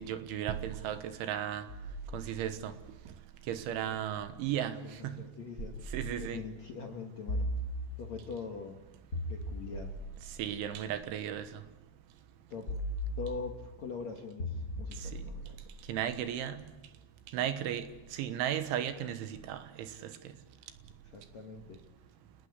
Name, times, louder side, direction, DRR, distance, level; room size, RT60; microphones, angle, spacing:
voice 1, 0.0-1.6 2.1-2.7 3.5-4.8 5.0-5.2 5.9-6.4 10.4-11.5 15.9-16.6 17.3-20.1, right 10 dB, 75° right, 3.5 m, -35 dB
sound 1, 1.7-4.5 5.6-6.6 7.3-8.4 9.1-11.4 12.7-13.8 14.4-16.6, equal, 15° left, 6.4 m, -40 dB
voice 2, 4.9-5.8 6.2-7.5 8.0-8.8 9.3-9.9 12.5-12.7 13.2-15.6 21.0-21.8, left 5 dB, 70° left, 1.6 m, -42 dB
28.0 x 19.5 x 8.2 m
omnidirectional pair, 5.8 m